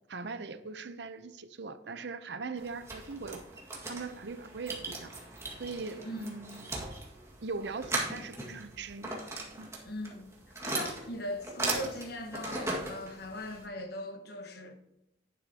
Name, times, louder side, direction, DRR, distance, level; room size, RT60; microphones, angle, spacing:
voice 1, 0.1-3.4 3.9-5.2 5.6-6.7 7.4-9.1 9.6-9.7, right 4 dB, 65° right, 0.7 m, -40 dB
sound 1, 2.6-13.6, right 2 dB, 15° right, 1.8 m, -38 dB
voice 2, 6.0-6.3 9.8-10.4 10.6-14.7, left 1 dB, 60° left, 1.2 m, -39 dB
11.0 x 9.4 x 2.9 m
head